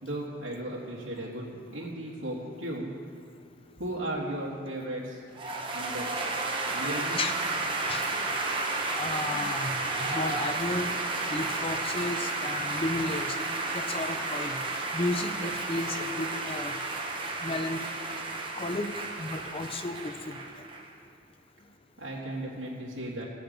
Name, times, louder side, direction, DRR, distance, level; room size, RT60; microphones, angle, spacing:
voice 1, 0.0-2.9 3.8-5.2 5.7-6.1 6.7-7.2 22.0-23.2, right 1 dB, 75° right, -6 dB, 1.7 m, -35 dB
sound 1, 5.4-20.9, right 3 dB, 25° right, 1.1 m, -32 dB
voice 2, 9.0-10.9 11.3-13.4 13.7-14.6 14.9-16.7 17.4-17.9 18.5-18.9 19.2-20.4, left 2 dB, 30° left, 7 dB, 0.6 m, -33 dB
16.0 x 7.8 x 5.2 m, 2.3 s
head